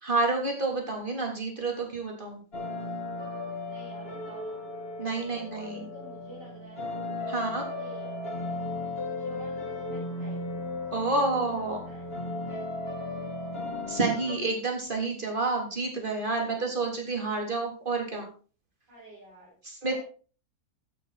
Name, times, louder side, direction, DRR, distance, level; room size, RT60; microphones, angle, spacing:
voice 1, 0.0-2.4 5.0-5.8 7.3-7.7 10.9-11.8 13.9-18.3 19.6-20.0, right 3 dB, 25° right, 1 dB, 3.5 m, -29 dB
sound 1, 2.5-14.4, left 2 dB, 30° left, 2.3 m, -36 dB
voice 2, 3.6-4.7 5.2-6.9 7.7-8.2 9.1-10.4 10.9-12.1 12.4-12.6 16.3-16.7 18.9-19.5 19.9-20.0, right 1 dB, 70° right, -7 dB, 6.3 m, -48 dB
13.0 x 10.0 x 4.2 m, 0.38 s
omnidirectional pair, 2.0 m